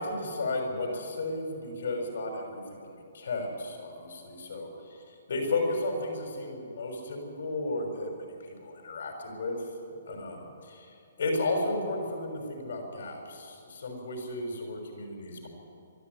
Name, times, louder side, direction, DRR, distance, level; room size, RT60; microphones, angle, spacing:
voice 1, 0.0-2.8 3.1-4.7 5.3-8.2 8.6-9.5 10.1-10.3 11.2-15.5, left 2 dB, 70° left, 2 dB, 6.2 m, -33 dB
24.0 x 12.0 x 9.7 m, 2.6 s
hypercardioid pair, 150°, 0 cm